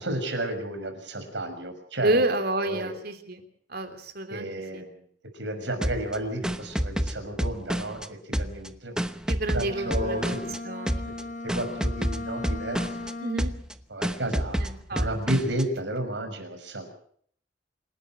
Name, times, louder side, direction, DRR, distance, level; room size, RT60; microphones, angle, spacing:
voice 1, 0.0-2.2 2.6-2.9 4.3-4.9 5.3-9.1 9.5-10.5 11.4-13.0 13.9-16.9, right 1 dB, 70° right, 6 dB, 6.1 m, -32 dB
voice 2, 2.0-3.4 3.7-4.5 4.7-4.8 9.3-10.3 10.6-11.1 13.2-13.5 14.6-15.1, right 2 dB, 55° right, 8 dB, 3.2 m, -29 dB
sound 1, 5.8-8.1 8.3-10.6 10.9-11.2 11.5-13.1 13.4-13.7 14.0-15.6, equal, 5° right, 0.9 m, -29 dB
Bowed string instrument, 9.6-13.7, left 2 dB, 40° left, 4.4 m, -37 dB
27.0 x 12.0 x 8.8 m, 0.62 s
head